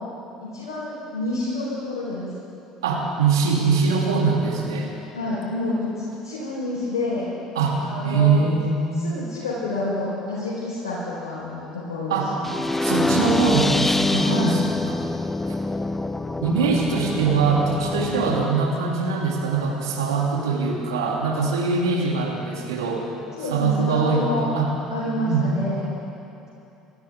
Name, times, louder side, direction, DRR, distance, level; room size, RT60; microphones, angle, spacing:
voice 1, 0.5-2.3 5.1-5.9 6.2-7.3 7.8-8.4 9.0-12.5 14.3-14.6 23.3-24.5 24.9-25.9, left 2 dB, 75° left, -9 dB, 4.2 m, -28 dB
voice 2, 2.8-4.9 7.5-7.8 8.0-9.0 12.1-12.3 12.8-14.6 16.4-23.1 23.5-24.7 25.2-25.4, right 4 dB, 75° right, -2 dB, 2.7 m, -22 dB
sound 1, 12.4-18.4, left 2 dB, 10° left, 0.7 m, -25 dB
28.5 x 14.0 x 3.6 m, 2.8 s
figure-of-eight pair, 60°, 2 cm